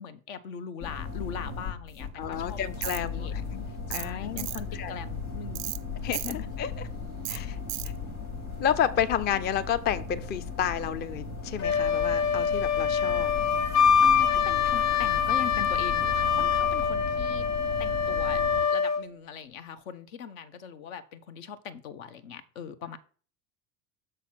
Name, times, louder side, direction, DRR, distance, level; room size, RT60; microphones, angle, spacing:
voice 1, 0.0-3.3 3.9-5.7 6.2-6.4 14.0-17.5 17.8-23.0, left 7 dB, 70° left, 11 dB, 0.9 m, -41 dB
sound 1, 0.8-18.6, left 4 dB, 85° left, 2.2 m, -37 dB
voice 2, 2.2-3.6 3.9-5.0 6.0-6.9 7.3-7.6 8.6-13.3, left 9 dB, 25° left, 13 dB, 0.4 m, -31 dB
Tools, 2.8-3.0 3.9-4.1 4.4-4.6 5.5-5.8 6.1-6.3 7.2-7.4 7.7-7.9, right 21 dB, 40° right, 0.4 m, -34 dB
Wind instrument woodwind instrument, 11.6-19.0, left 7 dB, 50° left, 1.5 m, -25 dB
6.5 x 4.1 x 5.7 m, 0.42 s
hypercardioid pair, 85°, 43 cm